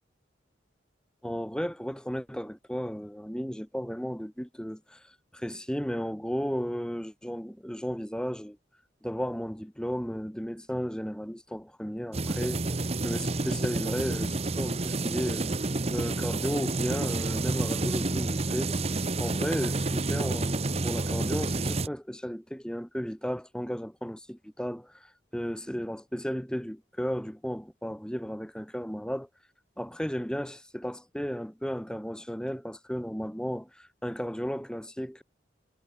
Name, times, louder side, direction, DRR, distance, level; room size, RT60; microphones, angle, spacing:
voice 1, 1.2-8.6 9.0-12.7 13.0-15.6 15.9-18.7 19.2-29.3 29.8-35.2, equal, 5° left, 2.3 m, -34 dB
sound 1, 12.1-21.9, right 2 dB, 35° right, 1.0 m, -29 dB
head